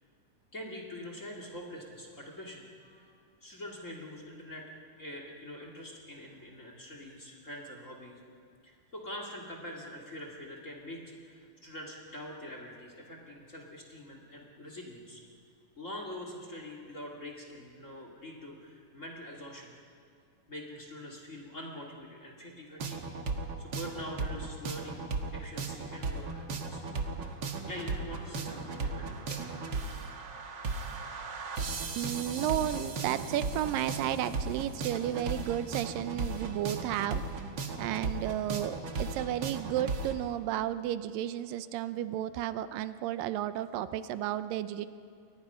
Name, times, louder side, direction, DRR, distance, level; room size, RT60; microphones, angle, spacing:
voice 1, 0.5-3.1 3.4-4.6 5.0-8.2 8.6-15.2 15.8-19.7 20.5-23.0 23.6-25.0 25.3-26.8 27.7-29.4, left 1 dB, 25° left, 0 dB, 2.6 m, -44 dB
sound 1, 22.8-40.1, right 4 dB, 50° right, 1.5 m, -36 dB
voice 2, 32.0-37.2 37.8-44.9, right 12 dB, 90° right, 12 dB, 2.5 m, -33 dB
29.0 x 23.5 x 5.7 m, 2.3 s
omnidirectional pair, 3.8 m